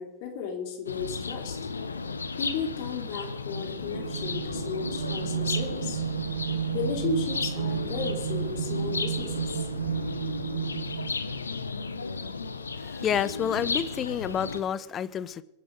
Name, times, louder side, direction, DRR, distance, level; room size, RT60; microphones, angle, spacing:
voice 1, 0.0-1.6 2.4-6.0 6.7-9.7, left 5 dB, 45° left, 3.2 m, -34 dB
sound 1, 0.9-14.6, left 4 dB, 75° left, 1.0 m, -34 dB
sound 2, 3.8-11.4, right 9 dB, 60° right, 0.4 m, -32 dB
voice 2, 12.8-15.4, left 8 dB, 25° left, 0.7 m, -29 dB
22.5 x 10.0 x 4.8 m
figure-of-eight pair, 90°, 0 cm